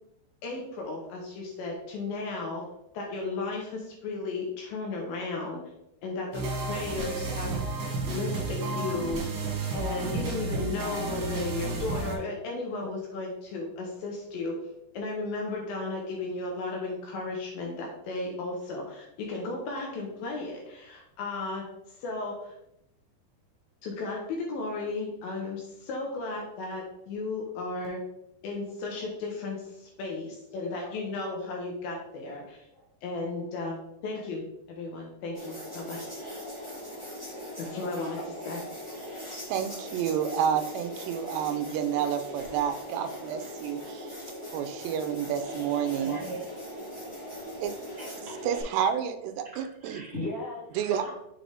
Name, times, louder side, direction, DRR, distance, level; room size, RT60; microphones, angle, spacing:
voice 1, 0.4-2.6 2.9-5.6 6.0-7.6 8.1-9.2 9.7-14.6 14.9-22.6 23.8-28.0 28.4-36.0 37.6-39.0 39.7-39.8, left 3 dB, 75° left, 0 dB, 2.3 m, -35 dB
sound 1, 6.3-12.2, right 3 dB, 60° right, 3.0 m, -32 dB
sound 2, 35.3-48.6, equal, 40° left, 0.4 m, -40 dB
voice 2, 39.5-44.1 44.5-46.2 47.6-47.7 48.5-50.0 50.8-51.1, right 8 dB, 90° right, 8 dB, 2.8 m, -29 dB
voice 3, 45.9-46.5 46.9-47.0 47.3-48.4 48.8-48.9 49.5-51.1, left 1 dB, 35° right, -6 dB, 2.5 m, -40 dB
7.3 x 3.8 x 3.4 m, 0.83 s
omnidirectional pair, 4.9 m